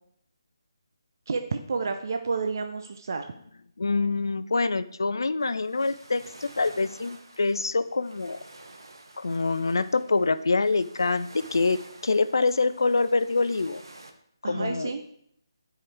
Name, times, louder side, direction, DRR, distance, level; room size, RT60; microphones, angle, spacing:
voice 1, 1.3-3.3 14.4-15.0, right 4 dB, 45° right, 6 dB, 0.6 m, -30 dB
voice 2, 3.8-8.4 9.2-13.8 14.4-14.9, left 3 dB, 60° left, 14 dB, 0.5 m, -25 dB
sound 1, 5.4-14.1, right 2 dB, 60° right, 1.1 m, -50 dB
10.0 x 5.1 x 4.5 m, 0.71 s
figure-of-eight pair, 150°, 2 cm